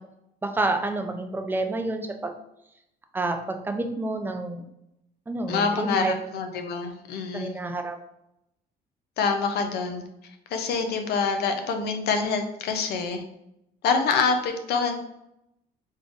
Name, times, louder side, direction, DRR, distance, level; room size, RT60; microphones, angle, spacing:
voice 1, 0.4-2.3 3.1-4.6 5.3-6.1 7.3-8.0, right 2 dB, 10° right, 5 dB, 0.4 m, -29 dB
voice 2, 5.5-7.6 9.2-10.0 10.5-13.2 13.8-14.9, left 5 dB, 75° left, 6 dB, 0.6 m, -26 dB
3.7 x 3.5 x 2.5 m, 0.83 s
cardioid pair, 110°, 17 cm